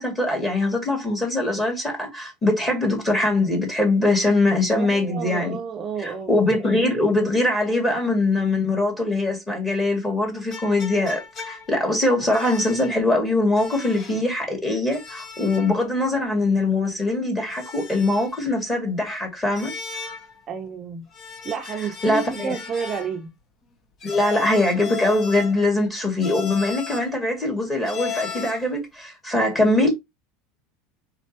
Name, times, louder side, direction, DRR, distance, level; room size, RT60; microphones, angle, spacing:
voice 1, 0.0-5.6 6.0-11.2 11.4-19.7 22.0-22.6 24.0-29.9, left 2 dB, 15° left, 2.4 m, -22 dB
voice 2, 4.7-6.5 20.5-21.1 21.4-23.3, right 6 dB, 30° right, 0.6 m, -30 dB
sound 1, 10.5-11.8 12.3-13.0 13.6-14.3 14.9-15.8 16.1-16.2 17.5-18.5 19.5-20.4 21.1-23.2 24.0-25.7 26.2-27.1 27.8-28.7, left 6 dB, 35° left, 1.0 m, -36 dB
4.3 x 4.1 x 2.9 m
supercardioid pair, 145°, 0 cm